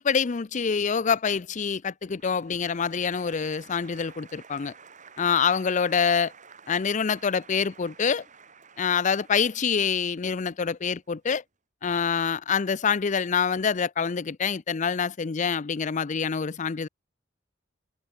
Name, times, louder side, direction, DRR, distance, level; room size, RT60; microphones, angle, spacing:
voice 1, 0.0-4.7 5.2-6.3 6.7-8.2 8.8-11.4 11.8-16.9, left 6 dB, 35° left, 0.5 m, -26 dB
Applause, 2.1-11.2, right 6 dB, 40° right, 4.7 m, -52 dB
head